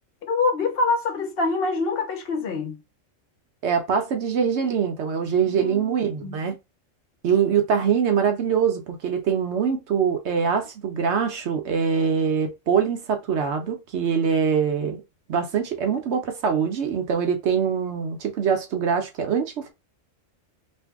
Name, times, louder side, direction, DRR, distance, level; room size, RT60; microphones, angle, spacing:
voice 1, 0.2-2.8 5.4-6.5, left 3 dB, 55° left, 0.8 m, -26 dB
voice 2, 3.6-6.5 7.2-15.0 15.3-19.7, right 7 dB, 65° right, 0.9 m, -23 dB
2.7 x 2.6 x 3.5 m
omnidirectional pair, 1.3 m